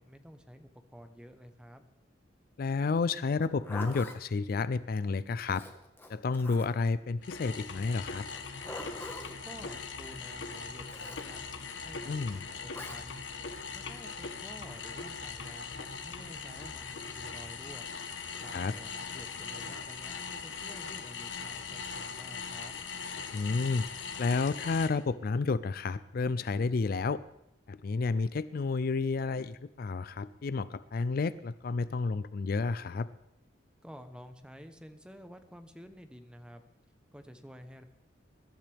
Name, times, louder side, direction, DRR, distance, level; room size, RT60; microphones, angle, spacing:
voice 1, 0.0-1.9 9.4-11.4 11.8-13.2 13.7-17.9 18.4-22.8 33.8-36.6 37.1-37.8, equal, 5° right, 8 dB, 0.9 m, -51 dB
voice 2, 2.6-5.6 6.1-8.3 12.1-12.4 18.5-18.7 23.3-27.2 27.7-33.1, left 4 dB, 55° left, 15 dB, 0.4 m, -31 dB
Zipper (clothing), 3.3-4.2 5.5-6.9 8.3-9.4 10.9-11.3 12.7-13.0, left 1 dB, 10° left, 1.4 m, -44 dB
sound 1, 7.2-24.9, left 5 dB, 90° left, 1.2 m, -40 dB
22.0 x 12.0 x 3.5 m, 0.81 s
head